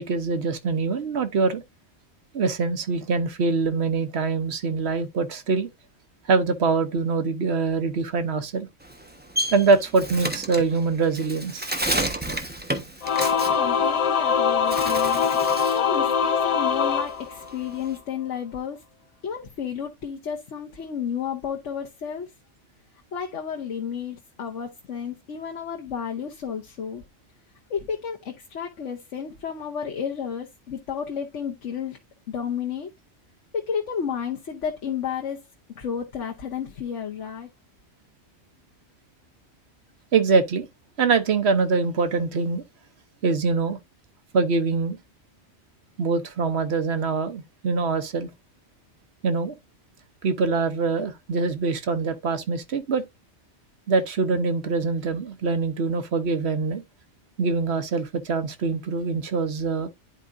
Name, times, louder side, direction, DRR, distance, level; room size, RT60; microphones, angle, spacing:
voice 1, 0.0-1.6 2.3-5.7 6.3-8.7 9.5-11.7 40.1-40.7 41.0-42.6 43.2-43.8 44.3-45.0 46.0-48.3 49.2-49.5 50.2-53.0 53.9-56.8 57.4-59.9, right 4 dB, 65° right, 1.1 m, -24 dB
Bird, 8.8-14.3 14.6-15.9 16.2-18.0, right 1 dB, 10° right, 1.1 m, -30 dB
Singing / Musical instrument, 13.0-17.9, left 7 dB, 55° left, 0.4 m, -23 dB
voice 2, 13.3-15.3 15.7-18.8 19.2-22.3 23.1-27.0 27.7-32.0 32.3-32.9 33.5-35.4 35.7-37.5, left 7 dB, 80° left, 1.3 m, -32 dB
10.5 x 4.7 x 2.6 m
omnidirectional pair, 1.2 m